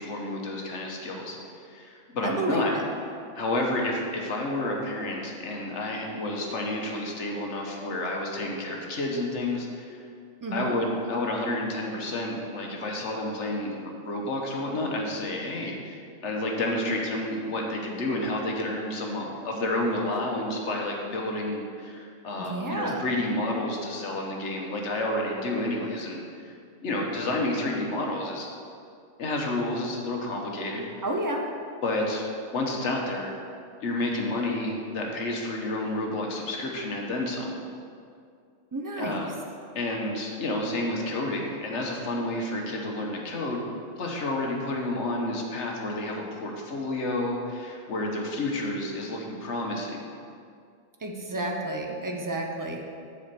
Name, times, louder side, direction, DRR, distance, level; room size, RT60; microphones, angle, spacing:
voice 1, 0.0-1.4 1.7-2.7 3.3-10.0 10.5-26.5 26.8-28.5 29.2-30.8 31.8-32.2 32.5-33.3 33.8-37.6 39.0-39.3 39.7-43.6 44.0-50.0, left 1 dB, 65° left, 0 dB, 1.3 m, -30 dB
voice 2, 2.2-2.8 10.4-10.7 22.4-23.0 31.0-31.5 38.7-39.3 51.0-52.8, right 1 dB, 30° right, 1 dB, 0.4 m, -30 dB
7.1 x 4.4 x 6.7 m, 2.3 s
omnidirectional pair, 1.3 m